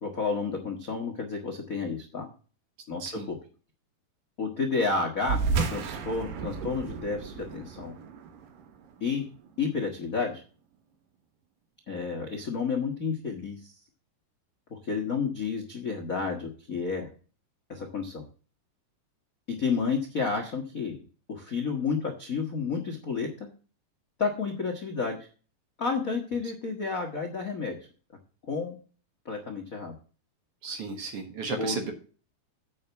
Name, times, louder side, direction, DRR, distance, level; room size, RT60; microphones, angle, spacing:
voice 1, 0.0-2.3 2.9-3.3 4.4-7.9 9.0-9.3 9.6-10.4 11.9-13.7 14.7-17.1 17.7-18.2 19.5-21.0 21.3-23.5 24.2-25.3 25.8-27.8 28.4-28.8 29.2-29.9 31.6-31.8, left 4 dB, 80° left, 2 dB, 0.7 m, -31 dB
sound 1, 5.2-10.1, right 5 dB, 80° right, 3.0 m, -33 dB
voice 2, 30.6-31.9, right 4 dB, 50° right, 5 dB, 2.1 m, -34 dB
8.6 x 5.6 x 6.9 m, 0.38 s
omnidirectional pair, 3.9 m